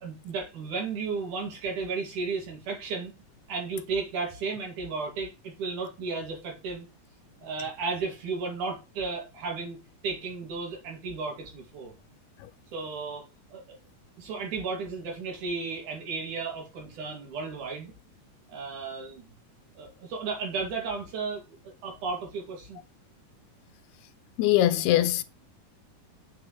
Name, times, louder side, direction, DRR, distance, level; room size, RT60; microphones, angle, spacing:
voice 1, 0.0-3.1 3.5-6.9 7.4-9.8 10.0-11.9 12.7-13.3 13.5-13.8 14.2-17.9 18.5-19.3 19.8-21.4 21.8-22.8, right 4 dB, 75° right, 3.6 m, -34 dB
voice 2, 24.4-25.2, left 13 dB, 80° left, 1.9 m, -22 dB
7.1 x 6.5 x 3.0 m
omnidirectional pair, 3.6 m